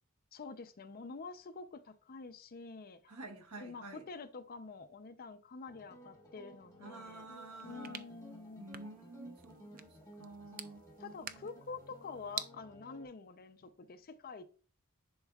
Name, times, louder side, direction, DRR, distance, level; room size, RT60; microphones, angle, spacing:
voice 1, 0.3-3.0 3.6-7.3 7.6-8.7 11.0-14.4, left 4 dB, 40° left, 0.5 m, -47 dB
voice 2, 3.1-4.0 6.8-8.1 8.6-11.5, right 2 dB, 90° right, 1.4 m, -50 dB
sound 1, 5.7-13.1, equal, 15° left, 1.4 m, -56 dB
sound 2, 7.3-12.5, right 8 dB, 40° right, 0.4 m, -49 dB
10.5 x 4.5 x 2.3 m
head